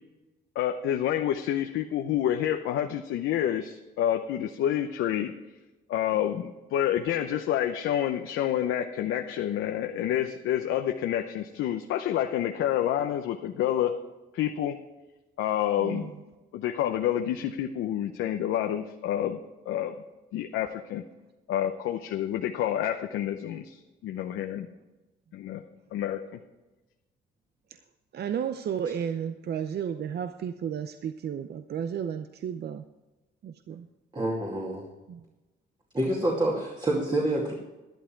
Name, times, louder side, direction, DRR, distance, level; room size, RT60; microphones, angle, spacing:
voice 1, 0.6-5.3 5.9-13.9 14.3-14.8 15.4-16.1 16.5-19.4 19.7-19.9 20.3-21.0 21.5-24.7 25.3-25.6 25.9-26.2, left 11 dB, 85° left, 5 dB, 0.8 m, -28 dB
voice 2, 15.8-16.1 28.1-32.8 33.4-33.9 35.1-35.2, right 8 dB, 55° right, 10 dB, 0.6 m, -33 dB
voice 3, 34.1-34.9 35.9-37.5, right 1 dB, 25° right, -2 dB, 2.4 m, -27 dB
11.5 x 11.5 x 4.6 m, 1.1 s
cardioid pair, 90°, 20 cm